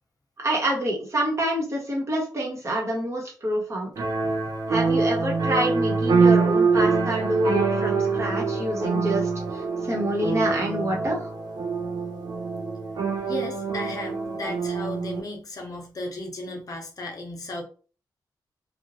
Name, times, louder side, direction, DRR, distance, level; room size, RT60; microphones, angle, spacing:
voice 1, 0.4-3.9 4.7-11.3, right 1 dB, 40° right, -2 dB, 1.1 m, -27 dB
sound 1, 4.0-15.2, right 4 dB, 65° right, 0.6 m, -24 dB
voice 2, 4.2-4.5 13.2-17.6, left 2 dB, 50° left, 1 dB, 0.7 m, -35 dB
3.0 x 2.3 x 2.7 m, 0.38 s
wide cardioid pair, 135°, 8 cm